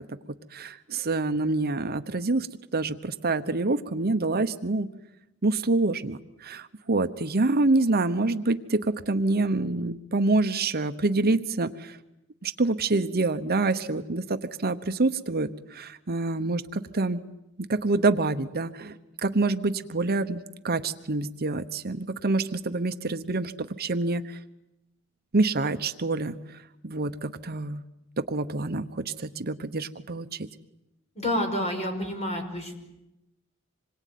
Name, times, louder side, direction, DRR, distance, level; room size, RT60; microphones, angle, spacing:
voice 1, 0.5-4.9 5.4-12.0 12.4-17.2 17.6-24.4 25.3-27.8 28.2-30.5, right 3 dB, 45° right, 10 dB, 1.0 m, -27 dB
voice 2, 31.2-32.7, left 1 dB, 30° left, 4 dB, 5.8 m, -29 dB
27.0 x 22.0 x 9.3 m, 0.92 s
head